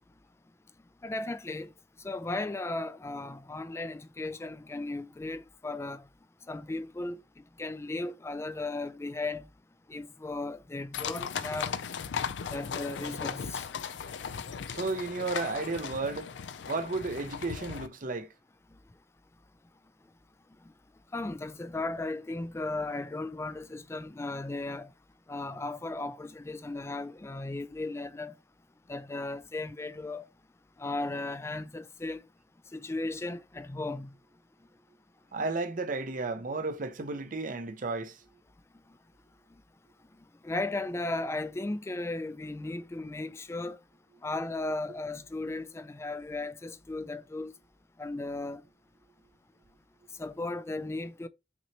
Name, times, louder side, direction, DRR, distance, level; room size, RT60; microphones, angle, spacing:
voice 1, 1.0-1.7 2.0-6.0 6.5-7.2 7.6-9.5 9.9-11.7 12.5-13.7 21.1-24.9 25.3-28.3 28.9-30.2 30.8-32.2 32.7-34.1 40.4-43.8 44.2-47.5 48.0-48.6 50.2-51.3, left 2 dB, 15° left, 0.3 m, -36 dB
sound 1, 10.9-17.9, left 7 dB, 80° left, 0.4 m, -37 dB
voice 2, 14.7-16.3 16.7-18.3 35.3-38.2, right 3 dB, 50° right, 0.6 m, -33 dB
6.0 x 2.9 x 2.8 m
head